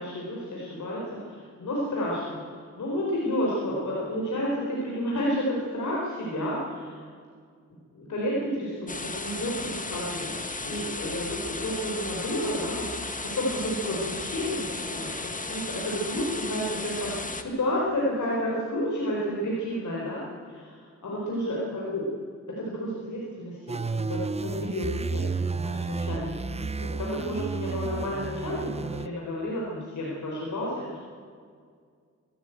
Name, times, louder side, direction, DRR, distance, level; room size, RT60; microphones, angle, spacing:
voice 1, 0.0-2.4 2.8-7.0 7.9-22.0 22.6-31.0, equal, 85° left, -4 dB, 4.3 m, -31 dB
sound 1, 8.9-17.4, left 3 dB, 25° left, 1.7 m, -35 dB
sound 2, 23.7-29.1, right 4 dB, 20° right, 0.5 m, -32 dB
23.5 x 13.0 x 9.2 m, 2.1 s
wide cardioid pair, 80°, 29 cm